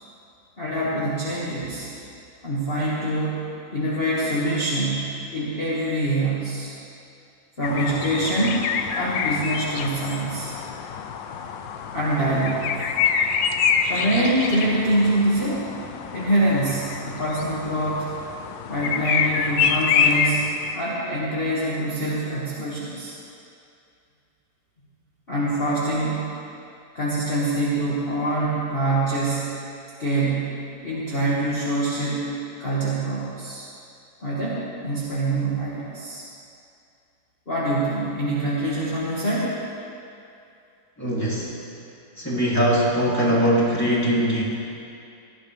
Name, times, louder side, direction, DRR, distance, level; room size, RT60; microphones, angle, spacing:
voice 1, 0.6-1.9 2.4-3.4 3.7-6.7 7.6-8.7 8.9-10.5 11.9-12.9 13.9-15.7 16.1-18.1 18.7-20.5 20.7-23.1 25.3-26.2 26.9-29.6 30.0-32.3 32.6-33.7 34.2-36.2 37.5-39.6, right 1 dB, 25° left, -9 dB, 1.8 m, -25 dB
sound 1, 7.6-20.7, left 6 dB, 70° left, 1.3 m, -26 dB
voice 2, 41.0-41.5 42.2-44.4, equal, 5° left, -7 dB, 2.7 m, -21 dB
18.0 x 13.5 x 3.4 m, 2.6 s
omnidirectional pair, 2.4 m